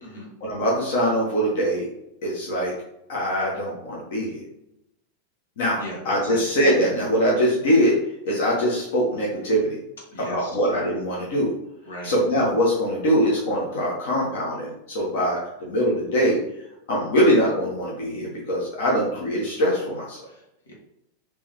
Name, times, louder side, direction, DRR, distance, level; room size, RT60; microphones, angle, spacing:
voice 1, 0.4-1.9 2.2-2.7 3.1-4.4 5.6-5.8 6.0-8.0 8.2-9.7 10.3-11.5 12.0-16.4 16.9-20.2, equal, 55° left, -3 dB, 1.2 m, -22 dB
voice 2, 10.1-10.5 11.8-12.1 20.2-20.7, equal, 70° left, -2 dB, 1.4 m, -38 dB
5.3 x 3.2 x 3.0 m, 0.83 s
figure-of-eight pair, 90°, 0 cm